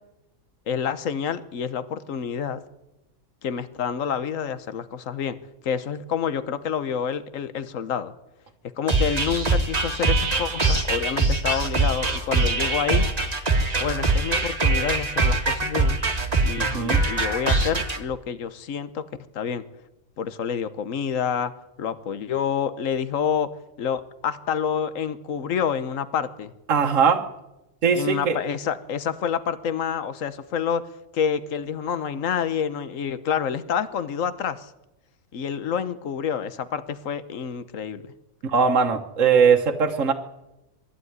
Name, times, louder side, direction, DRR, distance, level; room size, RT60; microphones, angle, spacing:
voice 1, 0.7-2.6 3.4-5.4 5.6-8.1 8.8-13.1 13.8-16.0 16.4-19.0 19.3-19.6 20.2-21.5 21.8-23.5 23.8-26.5 28.0-30.8 31.1-34.7 35.3-38.0, left 7 dB, 70° left, 13 dB, 1.4 m, -28 dB
sound 1, 8.9-18.0, right 3 dB, 30° right, 1.8 m, -23 dB
voice 2, 16.6-17.0 26.7-27.2 27.8-28.4 38.4-40.1, right 6 dB, 70° right, 3 dB, 1.6 m, -20 dB
21.5 x 15.0 x 9.5 m, 0.95 s
omnidirectional pair, 1.4 m